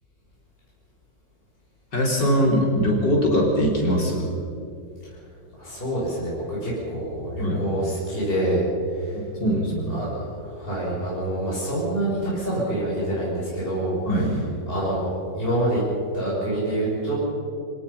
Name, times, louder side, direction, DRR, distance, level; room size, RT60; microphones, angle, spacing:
voice 1, 1.9-4.3 7.3-7.7 9.1-10.0 14.0-14.4, equal, 70° left, -1 dB, 5.0 m, -22 dB
voice 2, 5.6-8.6 9.0-9.2 9.9-13.9 14.7-15.8 16.1-17.1, right 1 dB, 30° left, -7 dB, 6.7 m, -26 dB
26.5 x 18.0 x 5.7 m, 2.6 s
omnidirectional pair, 2.0 m